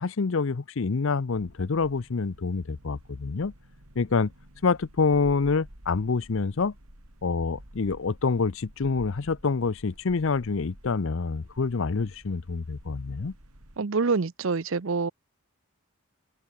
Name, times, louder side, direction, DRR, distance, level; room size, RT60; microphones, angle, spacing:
voice 1, 0.0-3.5 4.0-4.3 4.6-6.7 7.2-13.3, left 4 dB, 60° left, 0.6 m, -27 dB
sound 1, 1.3-13.8, right 1 dB, 90° right, 4.9 m, -51 dB
voice 2, 13.8-15.1, right 4 dB, 65° right, 0.7 m, -26 dB
head